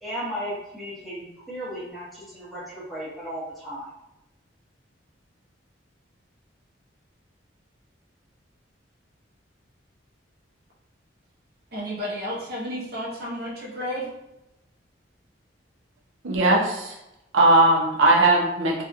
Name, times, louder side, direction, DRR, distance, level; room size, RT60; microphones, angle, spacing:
voice 1, 0.0-3.9, equal, ahead, -8 dB, 0.7 m, -35 dB
voice 2, 11.7-14.1, equal, 55° right, -3 dB, 0.7 m, -32 dB
voice 3, 16.2-17.0 17.3-18.8, right 2 dB, 90° right, -2 dB, 0.6 m, -19 dB
2.7 x 2.4 x 2.4 m, 0.90 s
head